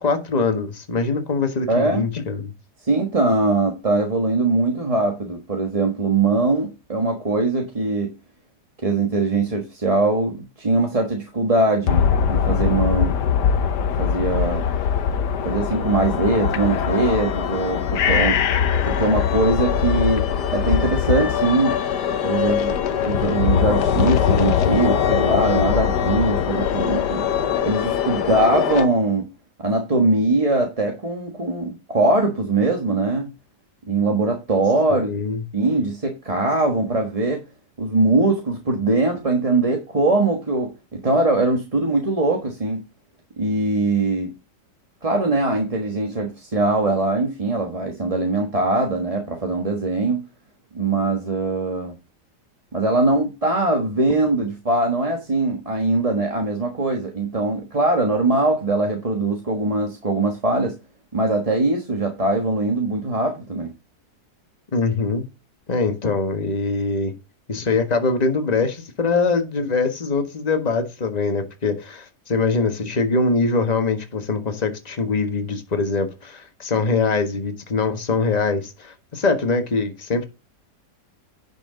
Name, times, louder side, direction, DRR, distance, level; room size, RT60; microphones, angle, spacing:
voice 1, 0.0-2.5 34.9-35.4 64.7-65.2 65.7-67.1 67.5-80.2, left 3 dB, 25° left, 1.5 m, -23 dB
voice 2, 1.7-2.1 2.8-8.1 8.8-13.2 14.0-14.7 15.4-18.4 18.8-21.8 22.2-22.7 23.0-27.3 27.6-29.3 29.6-33.3 33.9-35.1 35.5-37.4 37.8-42.8 43.4-44.3 45.0-50.3 50.7-51.9 52.7-60.8 61.1-63.7, right 2 dB, 20° right, 1.3 m, -21 dB
sound 1, 11.9-28.9, left 8 dB, 75° left, 1.5 m, -21 dB
10.5 x 6.2 x 3.8 m
omnidirectional pair, 1.8 m